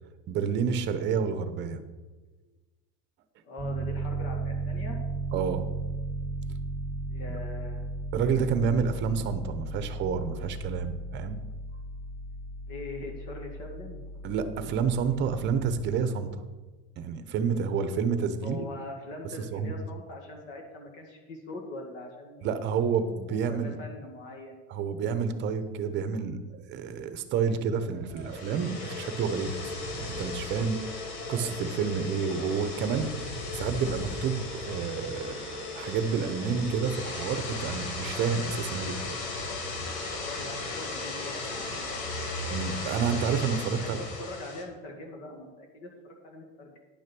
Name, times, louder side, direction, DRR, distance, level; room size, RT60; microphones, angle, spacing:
voice 1, 0.3-1.8 5.3-5.7 8.1-11.4 14.2-16.4 17.0-18.7 19.5-19.7 22.4-23.7 24.7-39.2 41.3-41.4 42.5-44.0, right 6 dB, 35° right, 10 dB, 0.8 m, -29 dB
voice 2, 3.4-5.0 7.1-7.9 12.7-14.1 18.4-22.6 23.3-24.6 40.2-41.9 43.7-46.7, left 2 dB, 50° left, 1 dB, 1.9 m, -42 dB
Piano, 3.6-15.8, right 3 dB, 10° right, 1.3 m, -35 dB
sound 1, 28.1-44.6, left 3 dB, 85° left, 2.5 m, -36 dB
10.0 x 6.3 x 6.1 m, 1.3 s
cardioid pair, 160°, 31 cm